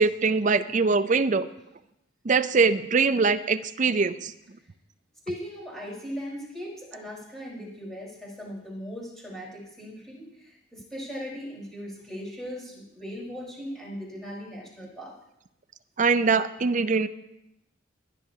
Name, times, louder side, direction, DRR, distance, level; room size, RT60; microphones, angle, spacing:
voice 1, 0.0-1.5 2.2-4.3 16.0-17.1, right 4 dB, 35° right, 11 dB, 0.4 m, -22 dB
voice 2, 5.3-15.2, equal, ahead, -5 dB, 4.2 m, -38 dB
21.0 x 11.0 x 2.8 m, 0.85 s
head